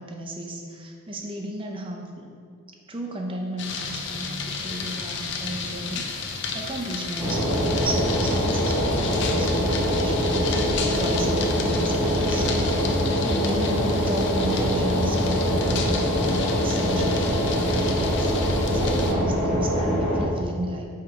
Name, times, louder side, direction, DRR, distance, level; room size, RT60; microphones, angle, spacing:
voice 1, 0.0-2.3 2.9-10.5 11.0-12.5 13.2-20.9, right 1 dB, 25° right, 1 dB, 0.6 m, -33 dB
sound 1, 3.6-19.1, left 4 dB, 55° left, 0.6 m, -32 dB
sound 2, 7.2-20.2, equal, 5° right, 1.6 m, -23 dB
5.7 x 4.8 x 4.9 m, 2.3 s
head